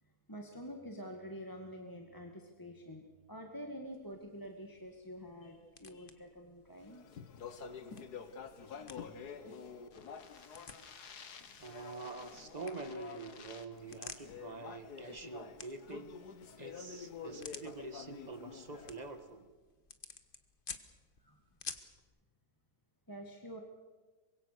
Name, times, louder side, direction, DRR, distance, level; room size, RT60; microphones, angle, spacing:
voice 1, 0.0-7.1 10.0-12.6 21.2-21.4 23.1-23.6, equal, 15° left, 3 dB, 1.8 m, -49 dB
sound 1, 3.9-22.0, left 5 dB, 35° left, 1.3 m, -54 dB
Speech, 6.8-19.2, left 6 dB, 75° left, 1.9 m, -49 dB
voice 2, 11.6-16.1 16.6-19.5, right 3 dB, 25° right, 9 dB, 1.5 m, -46 dB
24.5 x 22.0 x 6.8 m, 1.3 s
omnidirectional pair, 1.7 m